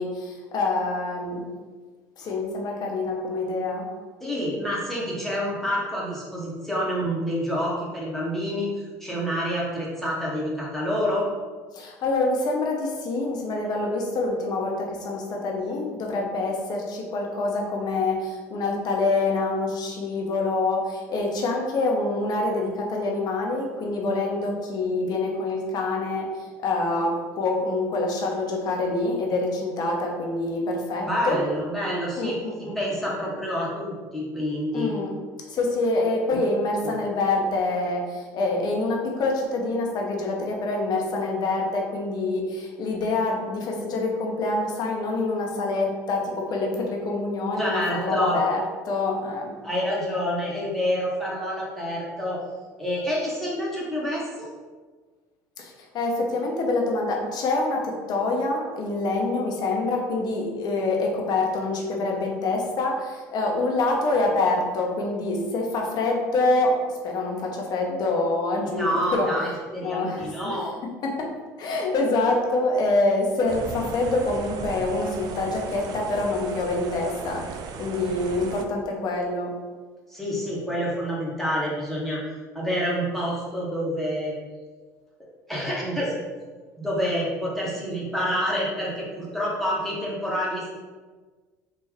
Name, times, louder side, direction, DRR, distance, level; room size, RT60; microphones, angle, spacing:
voice 1, 0.0-1.4 2.2-3.9 11.7-31.4 32.2-32.7 34.7-35.1 35.5-48.6 48.9-49.5 55.6-69.3 69.8-70.6 71.0-71.3 71.6-79.5, left 2 dB, 50° left, 0 dB, 0.9 m, -26 dB
voice 2, 4.2-11.3 31.0-34.9 36.3-36.4 47.6-48.4 49.6-52.4 52.8-54.5 68.7-70.8 80.1-82.2 82.5-84.3 85.5-86.1 86.8-90.8, equal, 5° left, -6 dB, 1.1 m, -28 dB
sound 1, 73.5-78.6, right 5 dB, 50° right, 0.4 m, -37 dB
3.3 x 2.5 x 3.5 m, 1.4 s
hypercardioid pair, 75°, 9 cm